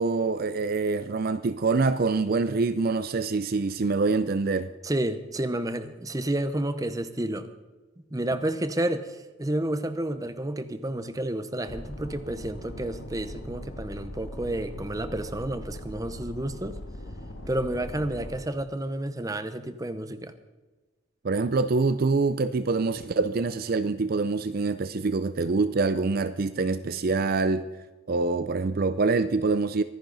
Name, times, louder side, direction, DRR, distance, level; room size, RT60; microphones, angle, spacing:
voice 1, 0.0-4.7 21.2-27.7 28.1-29.8, right 3 dB, 50° right, 0.5 m, -25 dB
voice 2, 4.8-7.5 8.1-16.8 17.5-20.3, right 1 dB, 20° right, 0.8 m, -30 dB
sound 1, 11.7-18.4, left 1 dB, 85° left, 1.9 m, -40 dB
24.0 x 10.5 x 4.0 m
head